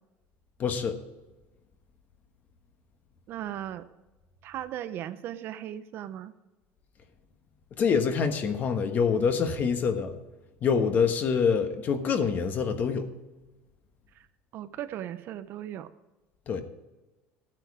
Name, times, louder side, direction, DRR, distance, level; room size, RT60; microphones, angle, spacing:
voice 1, 0.6-1.0 7.7-10.1 10.6-13.1 16.5-16.6, left 6 dB, 35° left, 7 dB, 1.3 m, -25 dB
voice 2, 3.3-3.9 4.4-6.3 14.1-14.3 14.5-15.9, right 11 dB, 45° right, 12 dB, 0.6 m, -37 dB
14.0 x 9.1 x 4.9 m, 1.1 s
cardioid pair, 160°, 5 cm